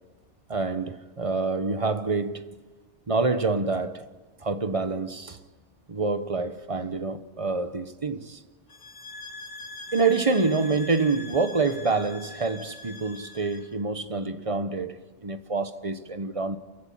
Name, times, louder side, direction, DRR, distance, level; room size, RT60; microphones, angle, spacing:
voice 1, 0.5-2.4 3.1-4.1 4.4-5.4 5.9-8.4 9.9-16.6, right 3 dB, 30° right, 1.1 m, -27 dB
sound 1, 8.7-13.7, left 3 dB, 85° left, 1.9 m, -43 dB
29.0 x 16.0 x 8.8 m
omnidirectional pair, 1.2 m